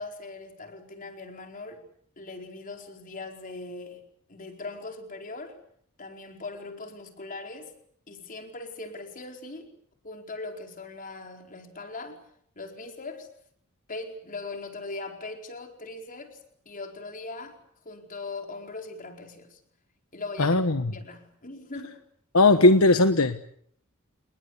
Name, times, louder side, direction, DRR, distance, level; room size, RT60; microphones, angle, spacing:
voice 1, 0.0-1.8 2.2-4.0 4.3-5.6 6.0-7.7 8.1-9.7 10.0-12.2 12.6-13.3 13.9-19.6 20.1-20.6 20.9-22.0, left 3 dB, 40° left, 4.7 m, -40 dB
voice 2, 20.4-20.8 22.3-23.4, left 2 dB, 70° left, 1.3 m, -18 dB
29.0 x 20.5 x 8.2 m
head